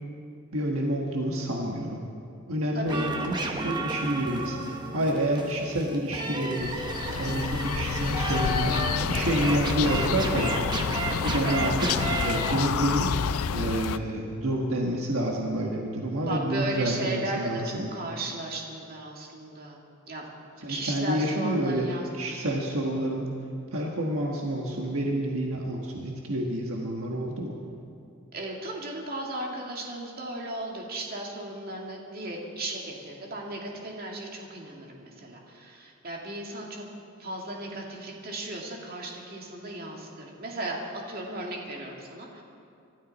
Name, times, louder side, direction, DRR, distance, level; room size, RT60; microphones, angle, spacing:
voice 1, 0.5-2.0 2.5-10.5 11.2-11.7 12.2-17.9 20.6-21.9 22.2-23.3 23.7-27.5, right 1 dB, 70° right, 0 dB, 1.5 m, -29 dB
voice 2, 2.7-3.1 11.4-12.2 16.2-19.8 20.1-20.3 20.7-22.4 28.3-36.9 37.2-42.4, right 1 dB, 45° right, -1 dB, 2.3 m, -36 dB
sound 1, 2.9-12.5, right 2 dB, 20° right, 1.0 m, -32 dB
sound 2, 6.6-14.0, left 6 dB, 75° left, 0.5 m, -29 dB
24.5 x 13.0 x 4.2 m, 2.5 s
head